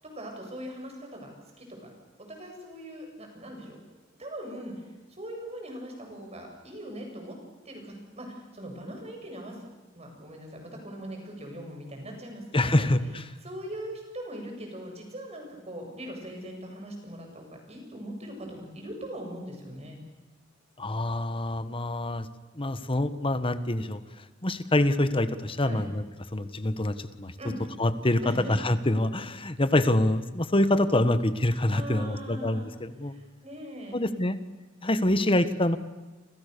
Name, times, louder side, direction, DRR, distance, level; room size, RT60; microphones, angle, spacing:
voice 1, 0.0-1.3 1.6-1.9 2.3-3.8 4.2-4.8 5.1-7.3 7.6-9.7 9.9-12.9 13.4-20.0 25.6-25.8 27.4-27.6 28.2-28.6 31.7-32.7 33.0-34.0, equal, 30° right, 2 dB, 8.0 m, -40 dB
voice 2, 12.5-13.2 20.8-22.3 22.6-24.0 24.4-26.0 26.3-27.3 27.8-33.1 33.9-34.4 34.8-35.8, left 1 dB, 25° left, 12 dB, 1.4 m, -25 dB
29.5 x 27.5 x 6.9 m, 1.2 s
head